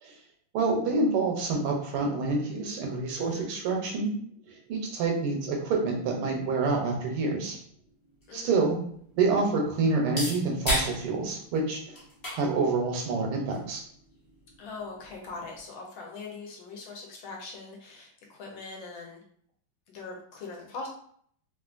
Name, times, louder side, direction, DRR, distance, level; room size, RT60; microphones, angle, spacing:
voice 1, 0.5-4.1 4.5-7.6 8.3-8.8 9.2-12.0 12.3-13.8, right 3 dB, 80° right, 1 dB, 1.6 m, -27 dB
voice 2, 3.2-3.5 8.3-8.6 14.6-19.2 19.9-20.9, left 3 dB, 70° left, -1 dB, 1.4 m, -41 dB
sound 1, 7.6-15.6, equal, 45° left, 0.7 m, -38 dB
3.6 x 2.4 x 2.4 m, 0.62 s
omnidirectional pair, 2.4 m